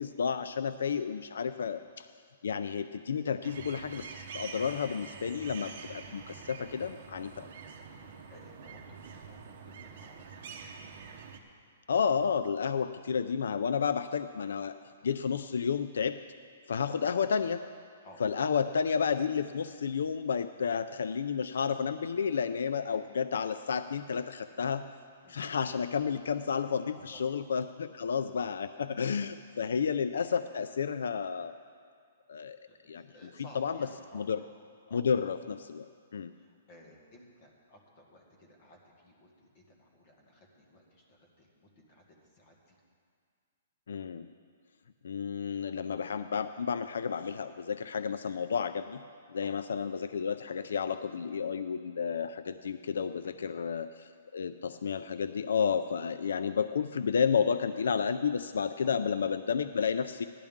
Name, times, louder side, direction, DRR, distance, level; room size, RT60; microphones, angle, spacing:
voice 1, 0.0-1.8 2.4-7.5 11.9-14.8 15.0-16.2 16.7-17.6 18.2-24.8 25.3-31.5 32.3-32.6 32.9-33.0 33.5-33.8 34.1-34.4 34.9-36.3 43.9-44.3 45.0-49.0 49.3-60.3, left 6 dB, 85° left, 11 dB, 0.4 m, -31 dB
sound 1, 3.4-11.4, right 5 dB, 45° right, 0.9 m, -46 dB
voice 2, 8.3-10.6 18.0-18.2 25.2-25.4 26.9-27.3 28.4-28.5 32.7-34.3 34.9-35.1 36.3-42.8 49.4-49.6 53.2-53.6 58.8-59.0, left 1 dB, 30° left, 0 dB, 1.8 m, -56 dB
15.5 x 11.5 x 3.6 m, 2.1 s
hypercardioid pair, 180°, 0 cm